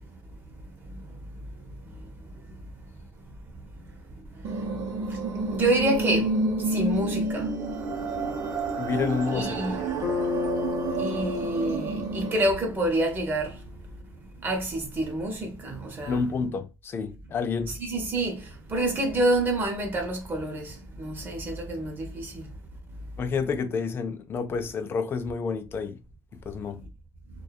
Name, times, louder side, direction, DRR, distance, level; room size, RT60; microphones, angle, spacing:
sound 1, 4.4-12.4, right 2 dB, 65° right, 0.6 m, -29 dB
voice 1, 5.5-6.3 6.7-7.5 9.3-10.0 11.0-13.5 14.4-16.2 17.7-22.4, right 1 dB, 35° right, 0.8 m, -28 dB
voice 2, 8.8-9.8 16.1-17.7 23.2-26.0 26.5-26.8, left 5 dB, 35° left, 0.3 m, -29 dB
Bass guitar, 10.0-14.1, left 7 dB, 85° left, 0.7 m, -34 dB
2.6 x 2.2 x 2.3 m
cardioid pair, 130°, 6 cm